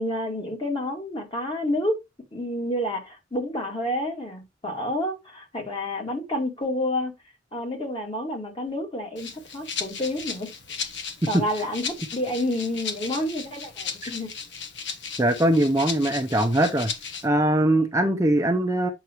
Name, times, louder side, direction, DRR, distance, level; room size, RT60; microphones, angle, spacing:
voice 1, 0.0-2.0 2.3-7.1 7.5-10.5 10.8-10.9 11.3-14.3, left 1 dB, 30° left, 2.3 m, -29 dB
Rattle (instrument), 9.2-17.3, left 6 dB, 70° left, 1.3 m, -36 dB
voice 2, 15.2-16.9 17.2-18.9, right 1 dB, 15° right, 0.7 m, -21 dB
8.2 x 5.9 x 3.0 m
head